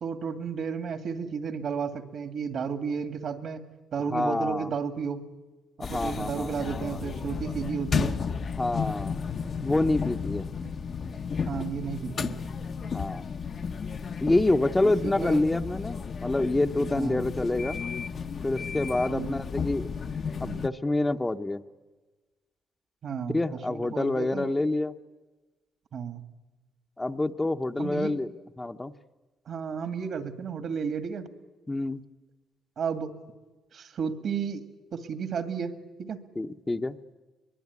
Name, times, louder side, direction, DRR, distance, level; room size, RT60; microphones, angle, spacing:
voice 1, 0.0-3.6 3.9-5.2 5.9-8.2 10.6-10.7 11.5-12.4 14.8-15.4 16.9-17.2 19.1-19.4 20.5-20.6 23.0-23.4 23.7-24.5 25.9-26.2 27.8-28.1 29.5-31.3 32.8-33.2 33.7-34.7 34.9-35.7 36.0-36.2, right 6 dB, 65° right, 8 dB, 2.3 m, -33 dB
voice 2, 4.1-4.7 5.8-6.8 8.6-9.2 9.6-10.5 12.9-13.2 14.2-17.8 18.4-19.9 20.4-21.6 23.3-24.9 27.0-28.3 28.6-28.9 31.7-32.0 36.4-37.0, left 2 dB, 15° left, 7 dB, 0.8 m, -27 dB
sound 1, 5.8-20.7, left 6 dB, 50° left, 0.9 m, -33 dB
23.0 x 22.0 x 9.6 m, 1.2 s
cardioid pair, 90°, 0 cm